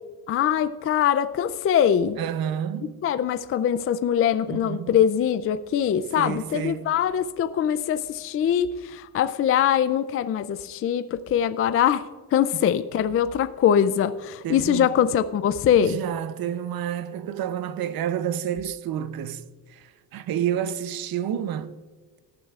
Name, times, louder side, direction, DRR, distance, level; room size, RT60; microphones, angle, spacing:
voice 1, 0.3-2.2 3.0-12.0 12.3-16.0, left 9 dB, 35° left, 0.4 m, -22 dB
voice 2, 2.2-2.9 4.5-4.9 6.2-6.9 14.4-14.9 15.8-19.4 19.7-21.7, right 9 dB, 60° right, 0.8 m, -29 dB
18.0 x 10.5 x 2.4 m
cardioid pair, 140°, 41 cm